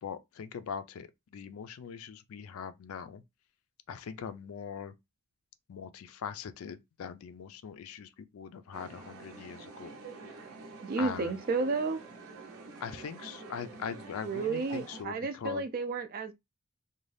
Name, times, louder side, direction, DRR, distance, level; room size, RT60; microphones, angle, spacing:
voice 1, 0.0-3.2 3.9-4.9 5.7-9.9 11.0-11.4 12.8-15.7, left 7 dB, 75° left, 0.4 m, -41 dB
sound 1, 8.7-15.0, right 4 dB, 75° right, 0.7 m, -48 dB
voice 2, 10.8-12.0 14.2-16.3, right 4 dB, 40° right, 0.4 m, -32 dB
2.5 x 2.2 x 3.2 m
head